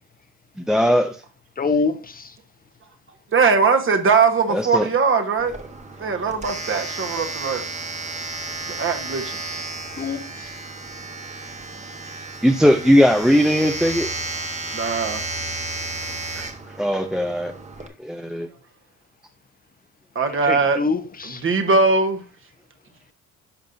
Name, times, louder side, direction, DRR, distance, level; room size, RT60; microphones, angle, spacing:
voice 1, 0.6-1.2 4.5-4.9 12.4-14.1 16.8-17.5 18.0-18.5, equal, ahead, 0.5 m, -18 dB
voice 2, 1.6-2.3 10.0-10.5 20.4-21.4, left 4 dB, 30° left, 0.8 m, -25 dB
voice 3, 3.3-5.5 6.0-7.6 8.7-9.4 14.7-15.2 20.1-20.8 21.2-22.2, right 4 dB, 45° right, 1.2 m, -20 dB
Domestic sounds home sounds, 5.4-17.9, right 2 dB, 25° right, 1.2 m, -33 dB
10.5 x 5.5 x 2.6 m
cardioid pair, 90°, 30 cm